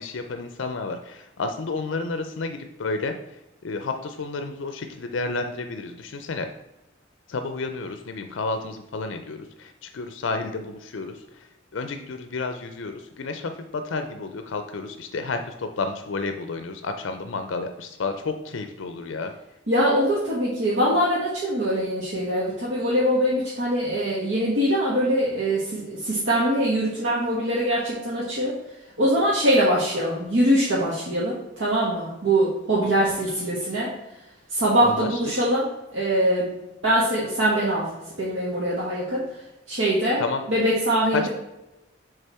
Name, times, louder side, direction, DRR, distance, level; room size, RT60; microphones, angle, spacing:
voice 1, 0.0-3.1 3.6-6.5 7.3-19.3 34.8-35.2 40.2-40.4 41.1-41.3, left 3 dB, 80° left, 7 dB, 0.5 m, -31 dB
voice 2, 19.7-28.5 29.0-33.9 34.5-35.7 35.9-36.5 36.8-37.9 38.2-39.4 39.7-40.2 40.5-41.3, equal, 80° right, -6 dB, 1.4 m, -23 dB
6.9 x 3.4 x 4.3 m, 0.95 s
head